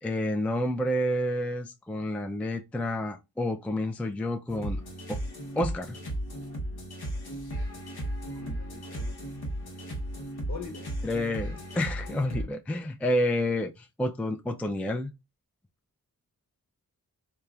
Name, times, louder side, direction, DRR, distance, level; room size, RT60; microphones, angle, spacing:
voice 1, 0.0-4.8 5.1-5.2 5.6-6.0 11.0-15.1, left 1 dB, 5° left, 0.3 m, -29 dB
sound 1, 4.5-12.4, right 1 dB, 80° left, 1.0 m, -35 dB
voice 2, 8.3-9.2 10.0-10.1 10.5-10.9, left 4 dB, 50° left, 1.1 m, -43 dB
3.0 x 2.3 x 2.3 m
cardioid pair, 40°, 37 cm